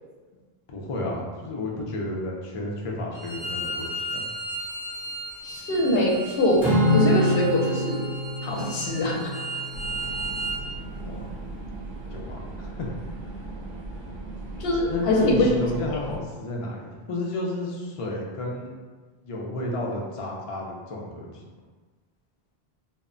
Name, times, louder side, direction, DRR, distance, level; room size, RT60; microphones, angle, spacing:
voice 1, 0.7-4.2 11.0-11.2 12.1-13.2 14.9-18.7 19.2-21.4, left 2 dB, 50° left, -2 dB, 0.4 m, -32 dB
Bowed string instrument, 3.1-10.6, right 1 dB, 30° left, 0.8 m, -35 dB
voice 2, 5.4-8.0 8.4-9.3 14.6-15.5, left 1 dB, 75° left, -1 dB, 0.8 m, -23 dB
Acoustic guitar / Strum, 6.6-11.1, left 1 dB, ahead, 0.6 m, -26 dB
sound 1, 9.7-16.2, right 2 dB, 60° right, 0.7 m, -37 dB
2.1 x 2.0 x 3.7 m, 1.4 s
omnidirectional pair, 1.0 m